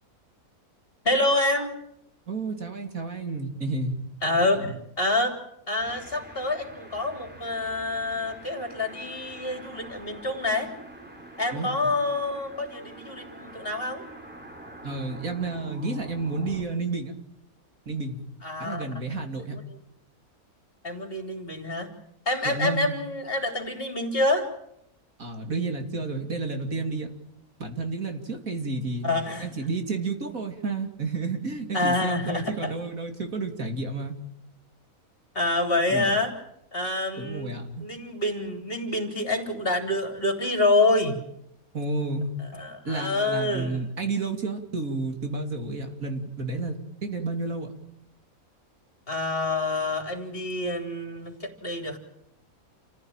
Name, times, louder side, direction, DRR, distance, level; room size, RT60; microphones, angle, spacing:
voice 1, 1.0-1.7 4.2-5.4 5.7-10.7 11.4-14.0 18.4-18.9 20.8-21.9 22.3-24.5 29.0-29.5 31.7-32.7 35.3-36.3 36.7-37.5 37.8-41.2 42.6-43.8 49.1-52.0, left 2 dB, 40° left, 4 dB, 3.9 m, -27 dB
voice 2, 2.3-3.9 11.5-11.9 14.8-17.1 17.9-18.2 18.6-19.6 22.4-23.0 25.2-27.1 27.6-29.1 29.4-34.1 35.9-36.1 37.2-37.9 41.7-42.3 42.8-47.7, right 3 dB, 65° right, 4 dB, 3.2 m, -31 dB
sound 1, 5.8-16.7, right 1 dB, 5° right, 3.2 m, -45 dB
28.5 x 15.5 x 9.0 m, 0.79 s
omnidirectional pair, 1.5 m